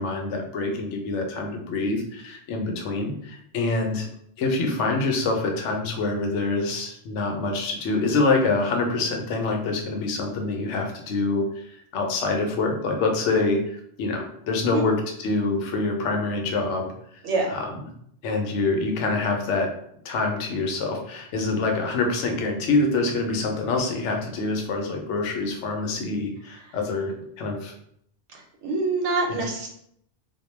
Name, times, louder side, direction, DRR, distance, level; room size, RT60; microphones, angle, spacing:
voice 1, 0.0-4.1 4.4-15.0 15.2-16.9 17.5-17.6 18.2-19.7 20.0-27.7 29.3-29.4, left 3 dB, 80° left, 2 dB, 0.9 m, -26 dB
voice 2, 17.2-17.6 26.5-26.8 28.3-29.7, right 3 dB, 85° right, 0 dB, 1.0 m, -26 dB
2.2 x 2.1 x 3.1 m, 0.70 s
omnidirectional pair, 1.2 m